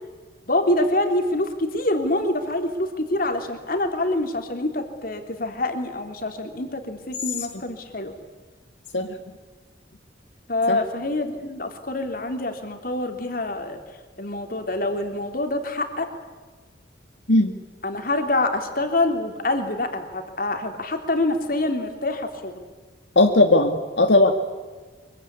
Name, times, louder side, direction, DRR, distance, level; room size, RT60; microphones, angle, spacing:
voice 1, 0.5-8.1 10.5-13.8 14.2-16.1 17.8-22.6, left 2 dB, 50° left, 5 dB, 3.4 m, -26 dB
voice 2, 23.2-24.3, left 2 dB, 85° left, 5 dB, 2.1 m, -17 dB
25.0 x 23.5 x 9.7 m, 1.4 s
head